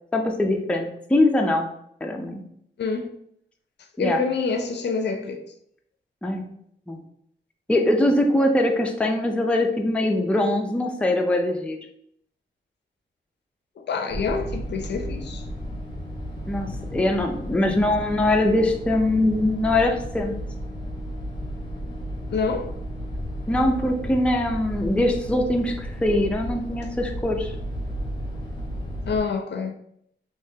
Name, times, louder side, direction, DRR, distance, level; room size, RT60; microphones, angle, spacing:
voice 1, 0.1-1.7 2.0-2.4 4.0-4.2 6.2-6.4 6.9-7.0 7.7-11.8 16.5-20.4 23.5-27.5, left 1 dB, 5° left, 0.4 m, -22 dB
voice 2, 2.8-3.1 4.0-5.4 13.8-15.4 22.3-22.7 29.1-29.7, left 4 dB, 65° left, 0.5 m, -27 dB
sound 1, 14.1-29.2, equal, 25° left, 0.9 m, -33 dB
3.6 x 3.0 x 2.7 m
wide cardioid pair, 125°, 19 cm